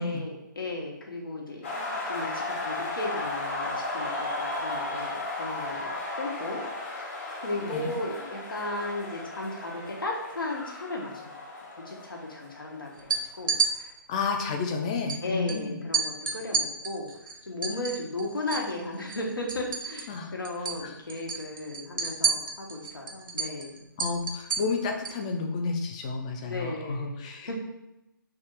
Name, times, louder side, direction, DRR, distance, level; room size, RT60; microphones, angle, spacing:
voice 1, 0.0-5.9 6.2-7.0 7.4-11.3 11.8-13.9 14.9-23.8 26.4-27.6, left 2 dB, 85° left, -1 dB, 1.1 m, -35 dB
sound 1, 1.6-13.3, left 2 dB, 40° left, 1.1 m, -35 dB
voice 2, 7.6-7.9 14.1-15.8 20.1-20.3 20.8-21.0 24.0-27.6, left 4 dB, 20° left, 4 dB, 0.3 m, -31 dB
sound 2, 13.0-13.7 15.1-15.2 15.5-15.6 15.9-18.7 19.0-20.2 20.4-20.8 21.1-25.2, right 5 dB, 75° right, 0.8 m, -30 dB
3.5 x 2.4 x 4.4 m, 0.90 s
figure-of-eight pair, 150°, 11 cm